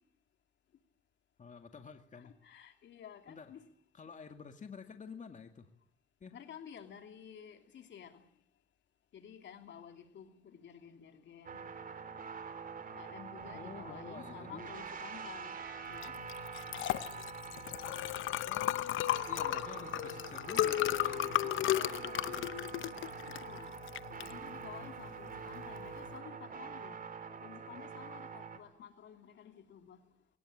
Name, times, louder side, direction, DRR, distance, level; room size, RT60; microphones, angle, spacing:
voice 1, 1.4-2.3 3.3-3.5 3.9-5.7 6.2-6.3 13.5-14.7 18.4-22.5, left 5 dB, 40° left, 6 dB, 2.2 m, -50 dB
voice 2, 2.2-3.6 6.3-8.2 9.1-11.7 13.0-15.5 15.9-16.2 21.9-23.0 23.4-23.8 24.2-27.0 27.4-30.0, left 8 dB, 65° left, 6 dB, 2.9 m, -52 dB
sound 1, 11.5-28.6, right 6 dB, 45° right, 3.7 m, -45 dB
Liquid, 16.0-26.1, left 14 dB, 80° left, 0.9 m, -35 dB
22.5 x 19.5 x 8.8 m, 0.65 s
cardioid pair, 90°, 20 cm